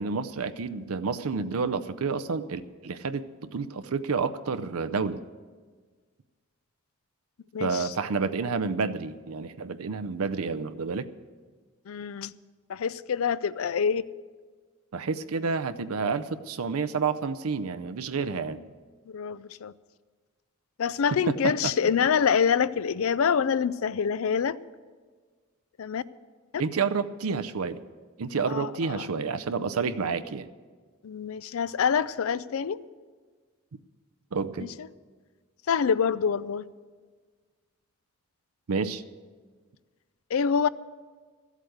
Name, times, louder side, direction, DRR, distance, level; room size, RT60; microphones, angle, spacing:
voice 1, 0.0-5.2 7.6-11.1 14.9-18.6 21.3-21.7 26.6-27.8 28.2-30.5 34.3-34.7 38.7-39.0, right 5 dB, 85° right, 11 dB, 0.6 m, -29 dB
voice 2, 7.5-7.9 11.9-12.3 12.7-14.0 19.1-19.7 20.8-24.6 25.8-26.0 28.5-29.1 31.0-32.8 34.6-34.9 35.7-36.7 40.3-40.7, left 7 dB, 75° left, 18 dB, 0.4 m, -26 dB
14.0 x 8.2 x 8.0 m, 1.5 s
head